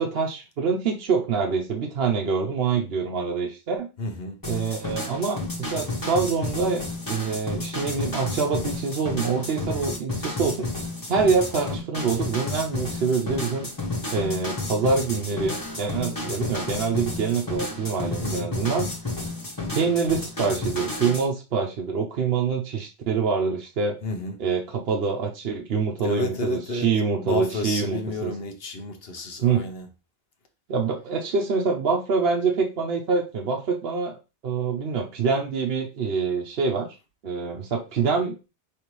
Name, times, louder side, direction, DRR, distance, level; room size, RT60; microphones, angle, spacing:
voice 1, 0.0-3.9 4.5-10.7 11.1-13.7 14.1-18.9 19.7-24.0 24.4-28.3 29.4-29.7 30.7-34.2 34.4-36.9 37.2-38.4, right 5 dB, 70° right, 0.9 m, -25 dB
voice 2, 4.0-4.4 18.2-18.5 24.0-24.3 26.0-29.9, left 2 dB, 65° left, 1.1 m, -31 dB
sound 1, 4.4-21.3, left 2 dB, 20° left, 1.2 m, -31 dB
5.2 x 3.2 x 3.1 m
omnidirectional pair, 1.1 m